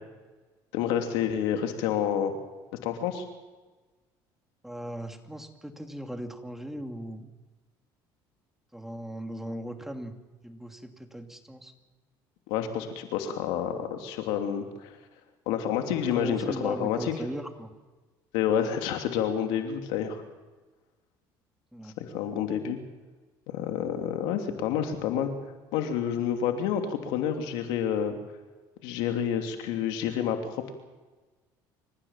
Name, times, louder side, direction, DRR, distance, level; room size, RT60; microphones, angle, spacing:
voice 1, 0.7-2.3 2.8-3.2 12.5-15.0 15.5-17.1 18.3-20.2 22.0-22.8 23.5-25.3 25.7-28.1 28.8-30.7, left 9 dB, 85° left, 5 dB, 2.9 m, -29 dB
voice 2, 4.6-7.3 8.7-10.1 10.4-11.7 16.0-17.7 21.7-21.9, equal, 5° right, 4 dB, 2.7 m, -38 dB
27.5 x 15.5 x 7.4 m, 1.2 s
cardioid pair, 100°, 9 cm